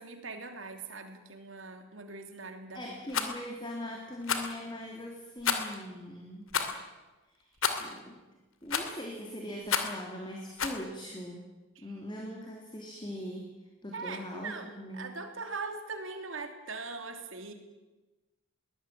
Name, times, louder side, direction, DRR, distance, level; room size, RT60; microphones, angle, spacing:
voice 1, 0.0-2.9 11.8-11.9 13.9-17.5, right 4 dB, 70° right, 6 dB, 3.2 m, -41 dB
voice 2, 2.7-6.5 7.4-7.5 7.8-8.2 8.6-11.4 11.8-13.5 13.8-15.1, left 1 dB, 20° left, 1 dB, 2.9 m, -41 dB
Rattle, 3.1-3.3 4.2-4.5 5.4-5.8 6.5-6.8 7.6-7.9 8.7-9.0 9.7-10.0 10.6-10.8, left 6 dB, 80° left, 2.6 m, -30 dB
22.0 x 18.5 x 9.2 m, 1.1 s
head